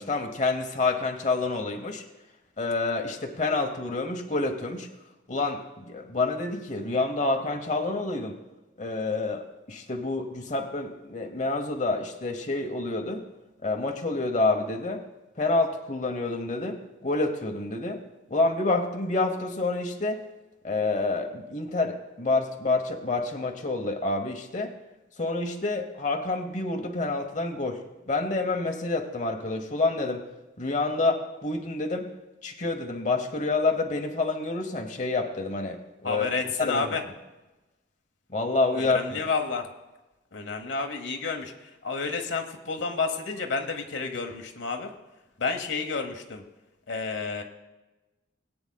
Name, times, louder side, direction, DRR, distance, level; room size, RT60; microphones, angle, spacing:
voice 1, 0.0-2.0 2.6-4.9 5.3-8.4 8.8-13.2 13.6-15.0 15.4-18.0 18.3-20.2 20.6-24.7 25.2-27.8 28.1-30.2 30.6-32.1 32.4-36.3 36.6-36.9 38.3-39.0, left 3 dB, 40° left, 3 dB, 0.9 m, -28 dB
voice 2, 36.0-37.0 38.7-39.7 40.3-44.9 45.4-46.4 46.9-47.4, left 4 dB, 70° left, 4 dB, 1.0 m, -30 dB
21.5 x 8.7 x 2.3 m, 1.1 s
head